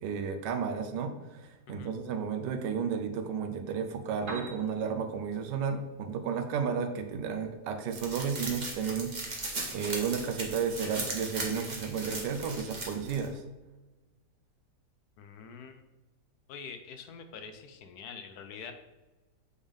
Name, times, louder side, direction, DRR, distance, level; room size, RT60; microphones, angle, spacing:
voice 1, 0.0-13.4, right 6 dB, 90° right, 6 dB, 1.3 m, -33 dB
Piano, 4.0-12.0, right 2 dB, 65° right, 1.8 m, -51 dB
sound 1, 7.9-13.3, right 2 dB, 30° right, 1.0 m, -38 dB
voice 2, 15.2-15.8 16.5-18.7, left 6 dB, 70° left, 7 dB, 1.0 m, -45 dB
8.0 x 3.5 x 3.6 m, 1.1 s
omnidirectional pair, 1.8 m